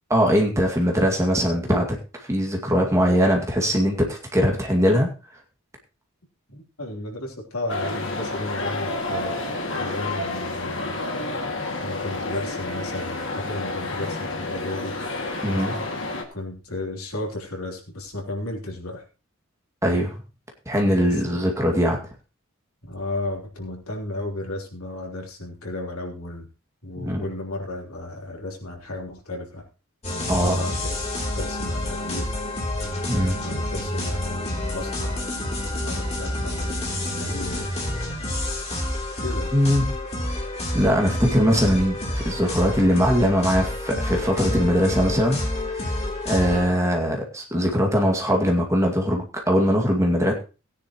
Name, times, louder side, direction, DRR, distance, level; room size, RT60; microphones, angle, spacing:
voice 1, 0.1-1.9 2.2-5.1 15.4-15.8 19.8-20.2 20.7-22.0 26.9-27.3 30.3-30.6 33.1-33.4 39.5-39.9 40.3-40.4 40.7-45.4 45.7-50.3, equal, 15° right, 1 dB, 2.1 m, -21 dB
voice 2, 6.5-9.4 9.7-11.0 11.8-14.9 16.3-19.0 21.0-21.4 22.8-26.5 26.8-29.6 30.4-32.3 33.4-35.2 35.8-37.7 39.2-39.5, left 2 dB, 85° left, 1 dB, 3.5 m, -34 dB
sound 1, 7.7-16.2, left 2 dB, 60° left, 2.2 m, -29 dB
sound 2, 30.0-46.7, left 1 dB, 30° left, 3.2 m, -28 dB
17.5 x 10.0 x 3.1 m, 0.33 s
head